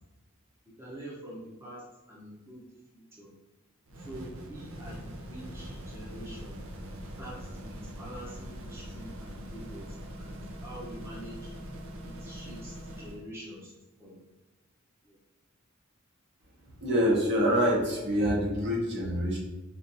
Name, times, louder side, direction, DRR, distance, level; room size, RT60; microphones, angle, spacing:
voice 1, 0.8-1.8 2.1-2.6 2.9-3.3 4.1-6.6 7.2-11.5 12.0-13.7 14.0-14.2 15.0-15.2, right 1 dB, 10° right, -7 dB, 0.7 m, -45 dB
sound 1, 3.9-13.2, equal, 75° right, 0.6 m, -42 dB
voice 2, 16.8-19.4, equal, 55° right, -3 dB, 1.0 m, -26 dB
4.4 x 2.5 x 2.6 m, 1.1 s
head